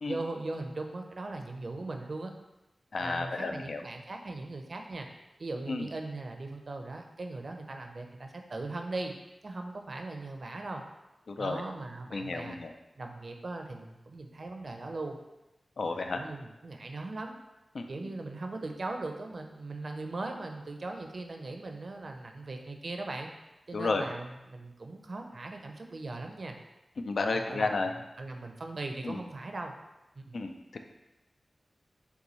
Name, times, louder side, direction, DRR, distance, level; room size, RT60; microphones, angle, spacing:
voice 1, 0.0-2.3 3.0-5.1 5.4-9.1 9.4-10.8 11.4-12.6 13.0-15.2 16.1-17.3 17.9-23.3 23.7-26.6 27.2-27.8 28.2-29.7 30.2-30.4, right 2 dB, 55° right, 4 dB, 0.5 m, -39 dB
voice 2, 2.9-3.8 5.7-5.9 11.3-11.6 12.1-12.7 15.8-16.2 17.7-17.9 23.7-24.0 27.0-27.9 29.0-29.2 30.3-30.8, left 3 dB, 70° left, 5 dB, 0.4 m, -32 dB
6.7 x 2.3 x 3.0 m, 0.98 s
wide cardioid pair, 100°, 0 cm